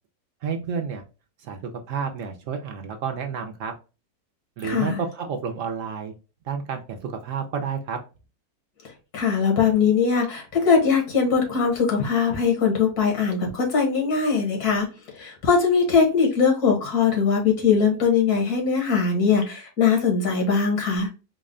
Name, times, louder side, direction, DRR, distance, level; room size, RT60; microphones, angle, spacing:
voice 1, 0.4-1.0 1.4-3.7 4.6-6.1 6.5-8.0, right 6 dB, 65° right, 0.9 m, -30 dB
voice 2, 4.6-4.9 9.1-14.9 15.1-21.1, left 5 dB, 80° left, 1.7 m, -21 dB
4.0 x 2.1 x 3.6 m
omnidirectional pair, 1.6 m